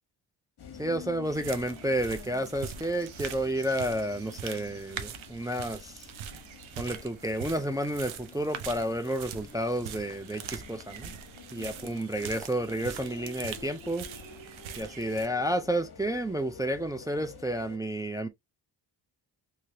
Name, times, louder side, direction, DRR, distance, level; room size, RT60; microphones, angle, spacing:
sound 1, 0.6-17.8, left 6 dB, 55° left, 1.0 m, -49 dB
voice 1, 0.8-6.1 6.8-11.1 11.5-14.1 14.8-18.3, right 1 dB, 10° right, 0.3 m, -31 dB
sound 2, 1.2-15.3, right 8 dB, 80° right, 0.8 m, -43 dB
3.2 x 2.9 x 2.7 m
cardioid pair, 95°, 46 cm